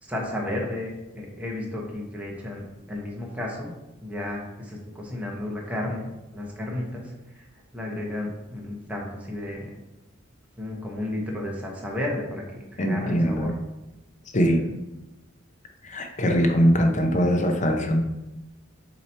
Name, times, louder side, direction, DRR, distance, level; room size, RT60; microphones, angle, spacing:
voice 1, 0.0-3.7 4.0-7.4 7.7-9.7 10.6-13.5, left 1 dB, 5° right, -2 dB, 1.0 m, -33 dB
voice 2, 12.8-13.5 14.3-14.7 15.8-18.0, equal, 35° left, 4 dB, 0.7 m, -22 dB
7.7 x 3.0 x 4.2 m, 0.99 s
head